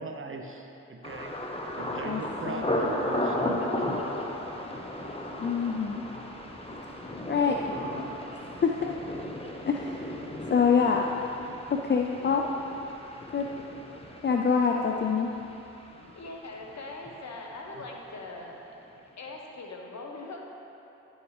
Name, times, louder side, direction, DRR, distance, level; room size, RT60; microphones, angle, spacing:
voice 1, 0.0-1.3 1.8-3.8, right 3 dB, 40° right, 3 dB, 0.8 m, -39 dB
Thunder, 1.0-16.8 17.1-17.7 18.1-18.4, left 1 dB, 20° left, 1.1 m, -35 dB
voice 2, 5.4-6.0 7.3-7.6 8.6-8.9 9.7-10.0 10.5-11.0 11.7-12.4 12.8-12.9 13.3-13.5 14.2-15.3, left 6 dB, 35° left, 1 dB, 0.5 m, -25 dB
voice 3, 16.1-18.7 19.2-20.4, left 2 dB, 55° left, 0 dB, 1.2 m, -41 dB
11.0 x 5.2 x 3.4 m, 2.9 s
supercardioid pair, 40°, 32 cm